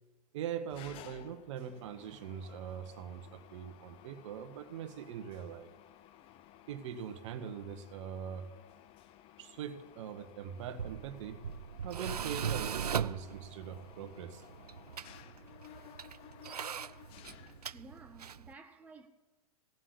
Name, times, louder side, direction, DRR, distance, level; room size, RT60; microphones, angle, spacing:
voice 1, 0.3-5.7 6.7-8.5 9.4-11.4 11.8-14.4, right 8 dB, 50° right, 1.3 m, -42 dB
Mechanisms, 0.7-18.1, left 12 dB, 30° left, 0.6 m, -57 dB
Tools, 10.6-18.5, right 7 dB, 85° right, 0.4 m, -40 dB
voice 2, 17.7-19.1, right 3 dB, 10° right, 0.8 m, -53 dB
17.0 x 7.5 x 8.3 m
figure-of-eight pair, 110°, 20 cm